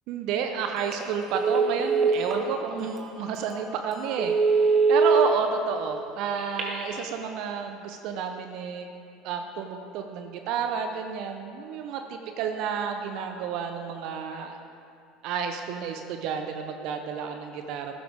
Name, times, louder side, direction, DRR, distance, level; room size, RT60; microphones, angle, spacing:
voice 1, 0.1-8.9 9.2-14.6 15.2-18.0, right 6 dB, 55° right, 5 dB, 0.8 m, -31 dB
Telephone, 0.8-1.0 1.3-2.4 3.0-3.1 3.5-3.6 4.0-5.2 6.4-7.0, right 4 dB, 35° right, 2.2 m, -23 dB
15.0 x 12.0 x 3.6 m, 2.5 s
figure-of-eight pair, 70°, 0 cm